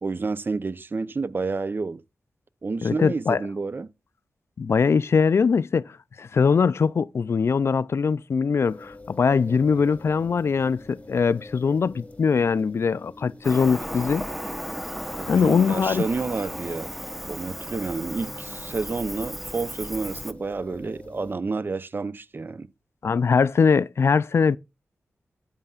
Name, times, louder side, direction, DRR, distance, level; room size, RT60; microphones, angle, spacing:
voice 1, 0.0-2.0 2.6-3.9 9.7-9.8 15.2-16.9 17.3-22.7, right 4 dB, 45° right, 0.7 m, -30 dB
voice 2, 2.8-3.4 4.6-5.8 6.2-14.2 15.3-16.1 23.0-24.6, left 5 dB, 60° left, 0.4 m, -21 dB
sound 1, 8.6-21.3, left 2 dB, 25° left, 1.8 m, -45 dB
Cricket, 13.4-20.3, equal, 5° right, 1.0 m, -35 dB
13.0 x 8.8 x 2.4 m
cardioid pair, 60°, 5 cm